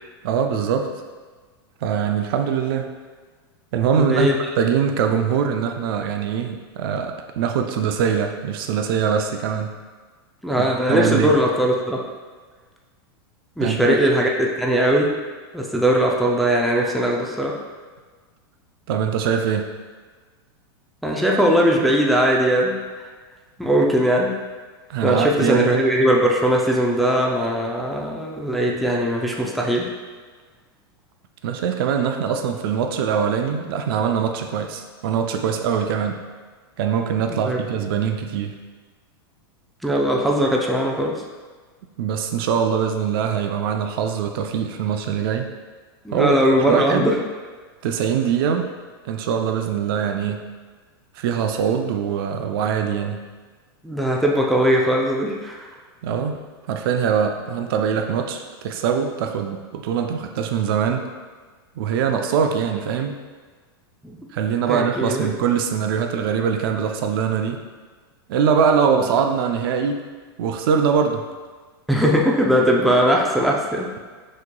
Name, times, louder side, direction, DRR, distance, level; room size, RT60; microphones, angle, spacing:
voice 1, 0.2-0.9 1.8-2.9 3.7-9.8 10.5-11.4 13.6-14.0 18.9-19.7 24.9-25.7 31.4-36.2 36.8-38.5 42.0-45.5 46.1-46.3 46.6-47.1 47.8-48.7 49.0-50.5 51.2-53.2 56.0-56.4 56.7-61.0 61.8-63.2 64.3-67.6 68.3-70.0 70.4-71.2, right 7 dB, 65° right, 5 dB, 0.4 m, -22 dB
voice 2, 4.0-4.3 10.4-12.0 13.6-15.1 15.5-17.6 21.0-22.8 23.6-24.3 25.0-29.9 37.3-37.6 39.8-41.2 46.0-47.2 53.8-55.7 64.0-64.2 64.7-65.3 71.9-73.9, equal, ahead, -2 dB, 0.4 m, -20 dB
6.2 x 3.0 x 2.2 m, 1.4 s
supercardioid pair, 135°, 13 cm